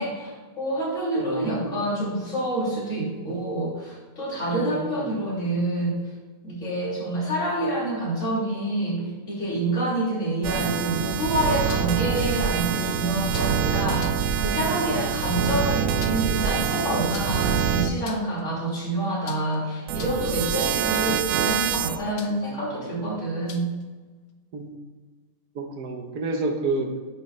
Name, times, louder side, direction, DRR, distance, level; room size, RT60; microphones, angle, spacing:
voice 1, 0.0-6.0 6.4-23.7, right 1 dB, 50° left, -6 dB, 3.4 m, -27 dB
voice 2, 1.2-1.8 4.6-5.1 14.9-15.1 20.6-20.7 24.5-24.7 25.5-26.9, right 2 dB, 85° right, 4 dB, 1.6 m, -29 dB
sound 1, 10.4-17.9 19.9-22.0, right 8 dB, 70° right, 0.9 m, -25 dB
sound 2, 11.0-12.0 13.3-13.6 13.9-14.3 15.7-16.4 17.1-17.5 17.9-18.4 19.3-19.6 19.9-20.4 20.9-21.3 22.2-22.5 23.5-23.8, left 6 dB, 75° left, 1.3 m, -43 dB
10.0 x 6.1 x 4.3 m, 1.3 s
omnidirectional pair, 1.6 m